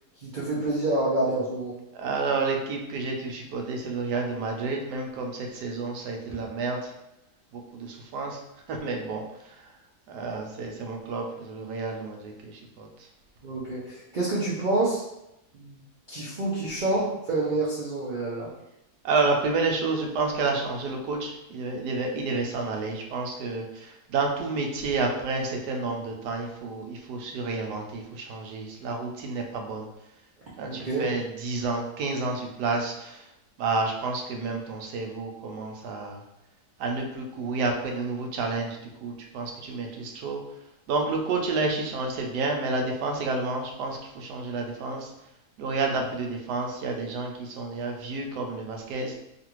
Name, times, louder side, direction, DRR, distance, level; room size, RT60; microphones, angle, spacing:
voice 1, 0.2-1.8 6.3-6.4 13.4-15.0 15.5-18.5 30.7-31.0, right 2 dB, 65° right, -6 dB, 0.4 m, -28 dB
voice 2, 1.9-6.9 7.5-8.4 8.7-9.2 10.1-12.9 19.0-29.9 30.6-33.2 33.6-36.2 36.8-40.4 40.9-45.1 45.6-49.1, right 3 dB, 85° right, 2 dB, 1.2 m, -30 dB
3.1 x 2.5 x 2.9 m, 0.87 s
omnidirectional pair, 1.7 m